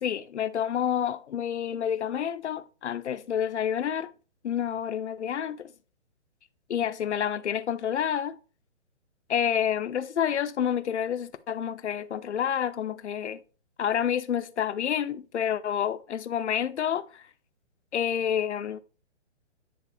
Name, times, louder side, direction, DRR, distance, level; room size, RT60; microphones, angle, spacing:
voice 1, 0.0-4.1 4.4-5.7 6.7-8.4 9.3-13.4 13.8-17.2 17.9-18.8, left 9 dB, 75° left, 0.6 m, -29 dB
9.4 x 3.6 x 3.3 m
hypercardioid pair, 150°, 35 cm